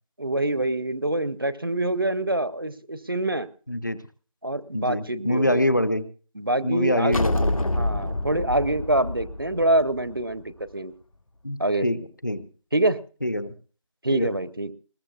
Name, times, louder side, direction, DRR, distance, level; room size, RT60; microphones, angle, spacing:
voice 1, 0.2-3.5 4.4-5.6 6.4-7.5 7.7-10.9 11.6-11.9 12.7-13.0 14.0-14.7, right 1 dB, 45° right, 16 dB, 0.7 m, -25 dB
voice 2, 3.7-4.0 4.7-6.0 6.6-7.7 11.4-12.5 13.2-13.5 14.1-14.4, left 1 dB, 35° left, 15 dB, 0.7 m, -25 dB
sound 1, 7.1-10.6, left 1 dB, 85° left, 1.5 m, -27 dB
23.5 x 20.5 x 2.4 m, 0.38 s
figure-of-eight pair, 180°, 17 cm